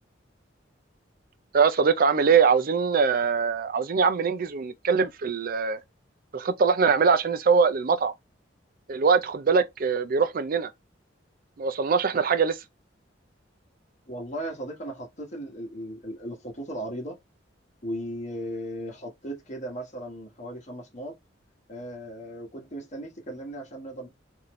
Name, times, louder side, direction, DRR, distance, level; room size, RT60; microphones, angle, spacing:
voice 1, 1.5-5.8 6.3-8.1 8.9-10.7 11.6-12.6, right 5 dB, 50° right, 0.5 m, -22 dB
voice 2, 14.1-17.2 17.8-21.2 21.7-24.1, equal, 40° left, 1.3 m, -36 dB
4.1 x 2.7 x 3.1 m
head